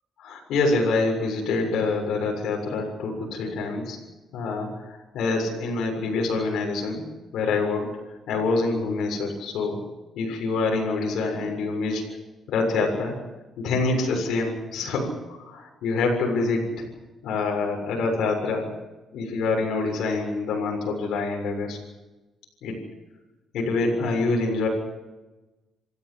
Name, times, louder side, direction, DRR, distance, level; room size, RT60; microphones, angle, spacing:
voice 1, 0.2-4.0 4.3-7.1 7.3-7.9 8.3-9.8 10.2-12.0 12.5-13.2 13.6-16.7 17.2-18.7 19.1-21.8 22.6-22.8 23.5-24.7, left 3 dB, 80° left, 1 dB, 7.1 m, -26 dB
28.0 x 16.0 x 8.2 m, 1.1 s
cardioid pair, 90°, 0 cm